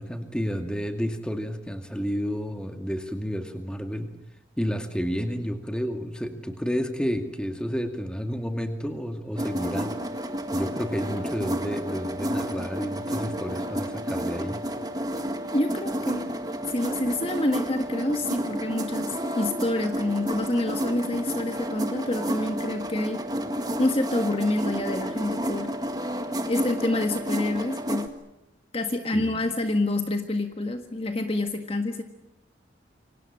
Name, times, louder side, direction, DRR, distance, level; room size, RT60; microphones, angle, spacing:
voice 1, 0.0-4.1 4.6-9.9 10.5-14.6 29.1-29.4, equal, 5° left, 6 dB, 2.4 m, -30 dB
sound 1, 9.4-28.1, equal, 20° right, 1.9 m, -31 dB
voice 2, 15.5-16.2 16.7-23.2 23.8-25.7 26.5-28.1 28.7-32.0, left 2 dB, 30° left, 6 dB, 1.6 m, -27 dB
28.5 x 25.0 x 7.6 m, 0.89 s
head